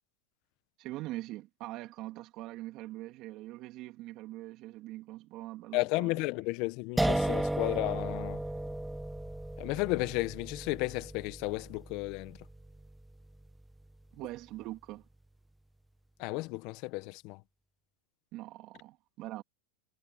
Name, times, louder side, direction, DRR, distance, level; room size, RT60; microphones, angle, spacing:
voice 1, 0.8-6.2 14.1-15.0 18.3-19.4, right 17 dB, 45° right, 3.2 m, -43 dB
voice 2, 5.7-8.4 9.6-12.4 16.2-17.4, left 23 dB, 50° left, 1.0 m, -33 dB
sound 1, 7.0-13.9, right 1 dB, 5° right, 1.2 m, -35 dB
supercardioid pair, 125°, 0 cm